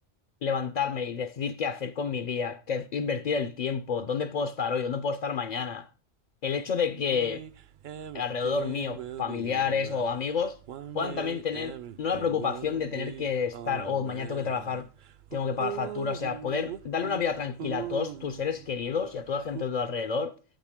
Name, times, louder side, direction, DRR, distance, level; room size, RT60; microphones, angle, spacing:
voice 1, 0.4-5.9 6.4-7.4 8.1-10.6 10.9-14.9 15.3-20.3, left 6 dB, 60° left, 0.4 m, -30 dB
sound 1, 7.1-19.6, right 10 dB, 60° right, 0.5 m, -41 dB
8.7 x 7.5 x 3.5 m
omnidirectional pair, 1.2 m